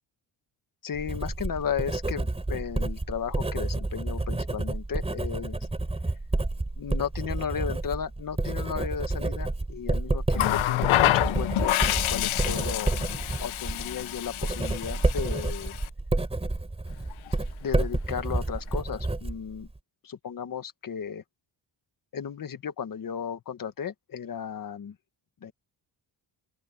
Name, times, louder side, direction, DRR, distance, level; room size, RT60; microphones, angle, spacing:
voice 1, 0.8-5.7 6.8-12.9 13.4-15.7 17.6-19.7 20.0-21.2 22.1-25.0 25.4-25.5, left 7 dB, 45° left, 1.6 m, -35 dB
Writing, 0.9-19.8, right 2 dB, 15° right, 3.4 m, -30 dB
Water tap faucet, 10.3-15.9 17.1-17.3, left 14 dB, 85° left, 0.7 m, -27 dB
open air
wide cardioid pair, 165°, 47 cm